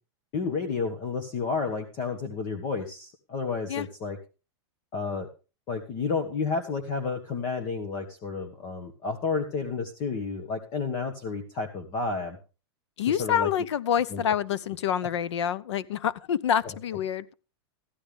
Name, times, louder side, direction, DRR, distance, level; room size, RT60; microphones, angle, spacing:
voice 1, 0.3-4.2 4.9-5.3 5.7-12.4 13.1-13.5 14.1-14.2, left 4 dB, 30° left, 1.5 m, -31 dB
voice 2, 13.0-17.3, left 9 dB, 80° left, 0.9 m, -27 dB
15.0 x 12.5 x 3.5 m
supercardioid pair, 175°, 14 cm